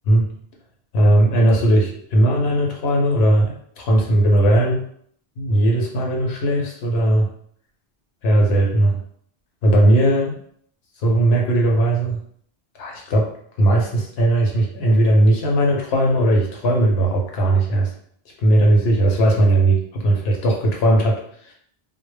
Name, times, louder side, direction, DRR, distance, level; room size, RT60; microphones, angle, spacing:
voice 1, 0.9-4.9 5.4-7.3 8.2-9.0 9.6-10.3 11.0-12.2 12.7-13.3 13.6-17.9 18.4-21.5, right 1 dB, 80° left, 0 dB, 0.9 m, -18 dB
2.1 x 2.0 x 3.1 m, 0.64 s
omnidirectional pair, 1.0 m